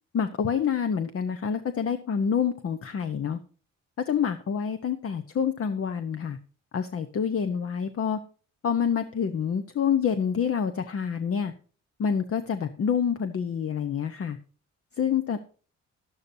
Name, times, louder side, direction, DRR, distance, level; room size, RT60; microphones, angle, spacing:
voice 1, 0.1-3.4 4.1-6.4 6.7-8.2 8.6-11.5 12.0-14.4 15.0-15.4, left 7 dB, 50° left, 10 dB, 1.0 m, -27 dB
12.5 x 12.0 x 2.8 m, 0.39 s
cardioid pair, 90°, 30 cm